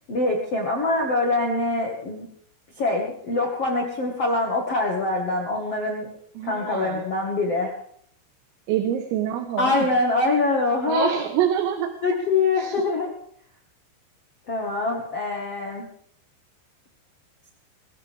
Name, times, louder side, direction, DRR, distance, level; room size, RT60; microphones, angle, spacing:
voice 1, 0.1-2.3 2.8-6.1 6.4-7.7 9.6-11.1 12.0-13.1 14.5-15.8, left 3 dB, 55° left, 0 dB, 1.7 m, -24 dB
voice 2, 6.4-7.0 8.7-9.9 10.9-11.9 12.6-12.8, right 10 dB, 80° right, 4 dB, 4.0 m, -26 dB
22.5 x 15.0 x 3.7 m, 0.66 s
omnidirectional pair, 6.0 m